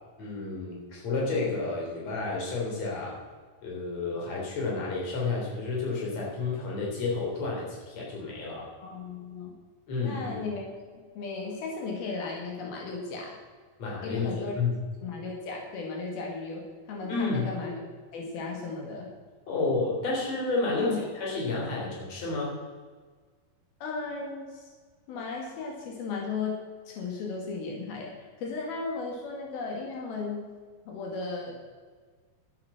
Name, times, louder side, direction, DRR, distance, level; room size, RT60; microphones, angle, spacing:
voice 1, 0.2-3.2 3.6-8.6 9.9-10.4 13.8-14.7 17.1-17.5 19.5-22.6, left 3 dB, 45° left, -3 dB, 4.5 m, -30 dB
voice 2, 8.8-9.5 10.0-13.4 14.0-14.5 15.0-17.7 18.1-19.1 20.8-21.0 23.8-24.7 25.1-26.6 26.9-30.5 30.9-31.5, left 4 dB, 85° left, -1 dB, 4.0 m, -35 dB
12.0 x 11.5 x 6.0 m, 1.5 s
omnidirectional pair, 4.2 m